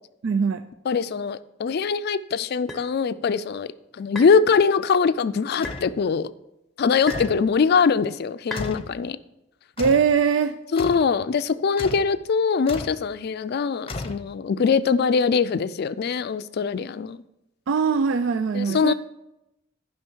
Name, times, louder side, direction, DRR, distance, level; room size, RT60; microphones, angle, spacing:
voice 1, 0.2-0.6 9.8-10.6 17.7-18.9, right 6 dB, 75° right, 10 dB, 0.4 m, -21 dB
voice 2, 0.9-6.3 6.8-9.2 10.7-17.2 18.5-18.9, left 5 dB, 55° left, 14 dB, 0.4 m, -22 dB
sound 1, 2.7-2.9 4.2-4.4 5.6-5.9 7.1-7.4 8.5-8.7, left 2 dB, ahead, 1.0 m, -34 dB
sound 2, 5.6-6.0 7.1-7.5 8.5-8.9 9.8-10.1 10.8-11.1 11.8-12.2 12.7-13.0 13.9-14.5, left 2 dB, 30° left, 0.7 m, -34 dB
11.0 x 5.4 x 4.5 m, 0.88 s
head